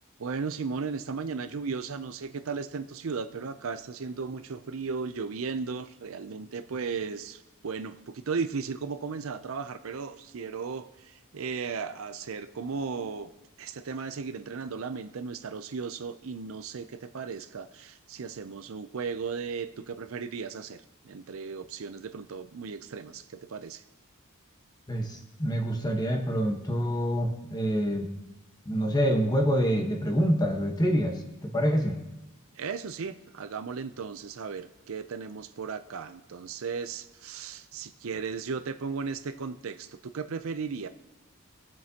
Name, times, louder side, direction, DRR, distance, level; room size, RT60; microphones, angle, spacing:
voice 1, 0.2-13.3 13.6-23.8 32.6-40.9, right 5 dB, 70° right, 10 dB, 0.5 m, -36 dB
voice 2, 24.9-28.1 28.6-32.0, equal, 20° left, 2 dB, 1.2 m, -26 dB
21.0 x 7.6 x 2.9 m, 1.0 s
head